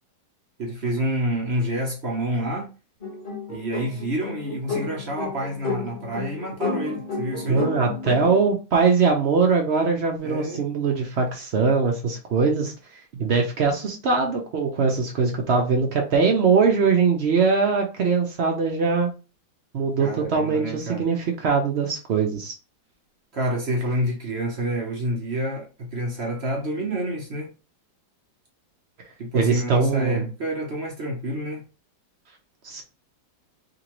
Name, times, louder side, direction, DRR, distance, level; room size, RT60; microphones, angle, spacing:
voice 1, 0.6-2.7 3.5-7.6 10.2-10.6 20.0-21.1 23.3-27.5 29.2-31.6, right 1 dB, 50° right, 0.8 m, -28 dB
sound 1, 3.0-8.5, left 3 dB, 30° left, 1.4 m, -32 dB
voice 2, 7.5-19.1 19.7-22.5 29.3-30.3 32.6-32.8, right 5 dB, 85° right, 0.5 m, -22 dB
3.8 x 2.6 x 2.9 m
omnidirectional pair, 2.0 m